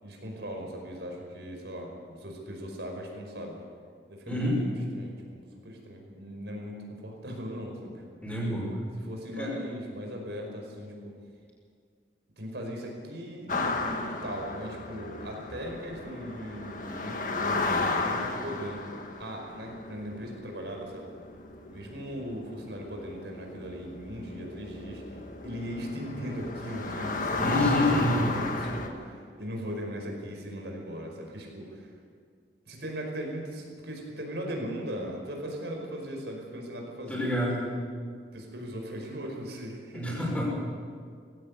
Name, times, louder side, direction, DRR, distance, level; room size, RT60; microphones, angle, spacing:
voice 1, 0.0-3.6 4.1-8.2 9.0-11.1 12.4-18.8 19.2-21.1 21.7-25.2 25.4-31.9 32.7-37.4 38.3-40.2, equal, 75° right, 1 dB, 5.2 m, -39 dB
voice 2, 4.3-4.6 8.2-8.7 9.4-9.5 27.4-28.3 37.1-37.6 39.9-40.5, left 1 dB, 10° left, -4 dB, 5.9 m, -27 dB
sound 1, 13.5-28.9, left 3 dB, 45° left, 1.8 m, -34 dB
19.5 x 16.5 x 8.3 m, 2.1 s
head